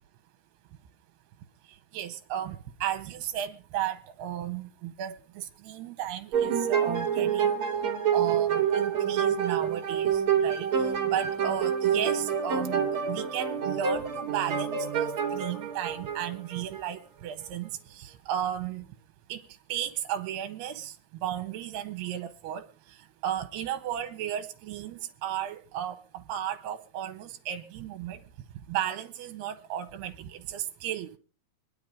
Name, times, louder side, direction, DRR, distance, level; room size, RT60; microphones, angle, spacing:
voice 1, 1.9-7.6 8.1-18.8 19.3-19.4 19.7-20.9 21.2-22.6 23.2-28.2 28.7-31.2, right 10 dB, 80° right, 8 dB, 3.0 m, -34 dB
sound 1, 6.3-16.8, right 8 dB, 40° right, 2.2 m, -27 dB
25.5 x 10.5 x 3.7 m, 0.38 s
omnidirectional pair, 4.7 m